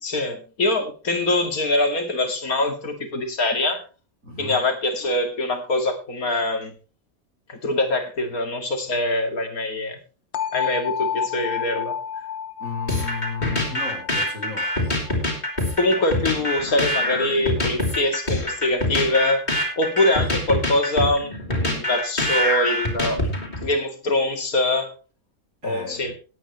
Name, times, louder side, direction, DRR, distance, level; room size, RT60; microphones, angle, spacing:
voice 1, 0.0-3.8 4.4-6.7 7.5-10.0 10.5-12.0 15.8-19.4 19.8-23.3 23.6-24.9 25.6-26.1, left 2 dB, 85° left, 2.7 m, -23 dB
voice 2, 4.2-4.6 12.6-14.7 25.6-26.1, left 3 dB, 65° right, 4.1 m, -33 dB
sound 1, 10.3-16.2, left 8 dB, 55° left, 1.2 m, -31 dB
sound 2, 12.9-23.7, left 1 dB, 30° left, 3.8 m, -24 dB
18.0 x 9.4 x 3.1 m
omnidirectional pair, 1.5 m